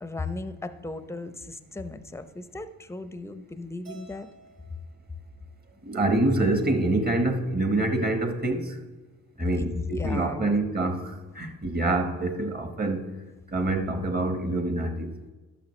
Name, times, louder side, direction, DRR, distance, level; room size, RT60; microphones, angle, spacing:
voice 1, 0.0-4.3 9.5-10.6, left 3 dB, 10° left, 12 dB, 0.7 m, -35 dB
Keyboard (musical), 3.8-6.2, right 4 dB, 70° right, 2.8 m, -53 dB
voice 2, 5.8-8.8 9.4-15.1, right 2 dB, 25° right, 6 dB, 1.4 m, -26 dB
11.5 x 6.4 x 3.2 m, 1.3 s
supercardioid pair, 65°, 35 cm